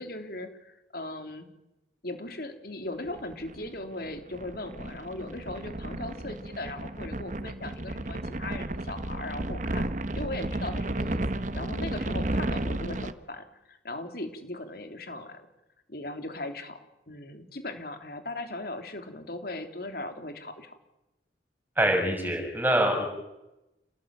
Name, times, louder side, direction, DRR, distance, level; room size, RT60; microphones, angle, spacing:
voice 1, 0.0-1.5 2.0-9.9 10.2-15.5 15.9-16.8 17.1-20.8, left 2 dB, 55° left, 7 dB, 3.5 m, -38 dB
sound 1, 3.1-13.1, right 1 dB, 45° right, 1.2 m, -33 dB
voice 2, 21.8-23.1, right 1 dB, 10° right, 2 dB, 6.7 m, -24 dB
29.0 x 19.5 x 9.1 m, 0.94 s
head